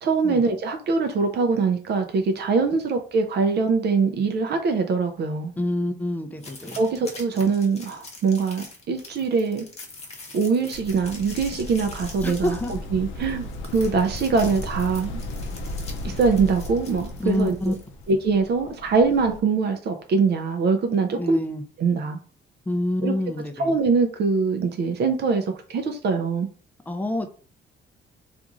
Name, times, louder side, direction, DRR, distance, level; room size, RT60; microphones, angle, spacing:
voice 1, 0.0-5.5 6.8-9.6 10.3-15.2 16.0-17.7 18.1-21.4 21.8-22.2 23.0-23.1 23.6-25.4 25.7-26.5, right 4 dB, 55° right, 5 dB, 0.5 m, -23 dB
voice 2, 5.6-6.8 12.2-12.7 17.2-17.7 21.2-21.6 22.7-23.8 26.9-27.3, left 1 dB, 10° left, 5 dB, 0.4 m, -27 dB
sound 1, 6.4-18.1, left 2 dB, 30° left, 0.8 m, -44 dB
sound 2, 10.7-19.4, left 2 dB, 75° left, 0.5 m, -35 dB
2.9 x 2.4 x 2.4 m, 0.41 s
cardioid pair, 90°, 20 cm